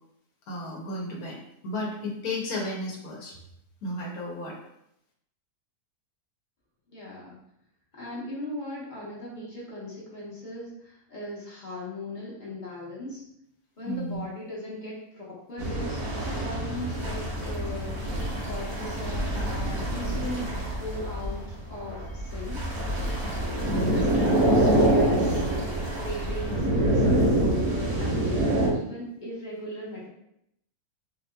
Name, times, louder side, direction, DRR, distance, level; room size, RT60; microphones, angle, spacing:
voice 1, 0.5-3.3 3.8-4.6 13.8-14.2 23.7-24.0, left 1 dB, 90° left, -2 dB, 1.3 m, -33 dB
voice 2, 6.9-7.4 7.9-13.2 13.8-18.2 18.4-20.4 20.8-22.6 23.5-25.4 25.9-30.1, left 1 dB, 35° left, -6 dB, 1.0 m, -38 dB
sound 1, 15.6-28.7, right 1 dB, 70° right, 1.6 m, -26 dB
4.6 x 2.8 x 2.2 m, 0.77 s
omnidirectional pair, 1.5 m